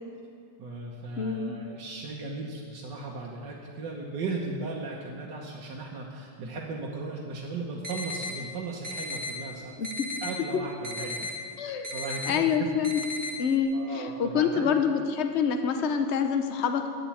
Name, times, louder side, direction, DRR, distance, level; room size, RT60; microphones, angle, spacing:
voice 1, 0.6-9.7 10.2-11.4 11.9-12.7 13.7-14.8, right 3 dB, 70° right, -3 dB, 1.7 m, -36 dB
voice 2, 1.2-1.6 9.8-9.9 11.6-11.9 12.3-13.0 13.4-16.9, left 6 dB, 50° left, 7 dB, 0.8 m, -26 dB
sound 1, 7.8-8.3 8.8-9.3 9.8-10.3 10.8-11.3 11.8-12.3 12.8-13.3, left 2 dB, 35° right, 1.5 m, -35 dB
10.5 x 7.3 x 8.5 m, 2.4 s
omnidirectional pair, 2.0 m